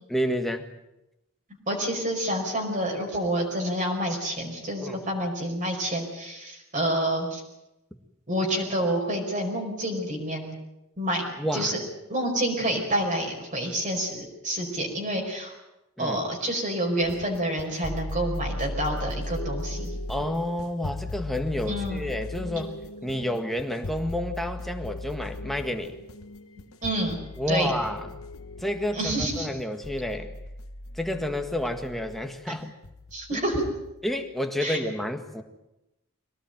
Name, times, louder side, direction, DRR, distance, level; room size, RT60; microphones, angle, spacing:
voice 1, 0.1-0.7 4.8-5.0 11.4-11.7 16.0-16.2 20.1-25.9 27.4-28.1 28.6-30.3 30.9-32.7 33.3-33.4 34.0-35.4, left 1 dB, ahead, 5 dB, 1.7 m, -30 dB
voice 2, 1.7-7.4 8.3-10.6 11.0-11.8 12.1-15.5 16.0-19.9 21.7-22.0 26.8-27.2 27.5-27.7 28.9-29.5 32.5-32.6 33.1-33.7 34.6-34.8, right 1 dB, 35° right, 0 dB, 5.1 m, -28 dB
sound 1, 17.0-34.2, left 1 dB, 70° left, 1.3 m, -37 dB
23.0 x 18.0 x 9.2 m, 0.92 s
head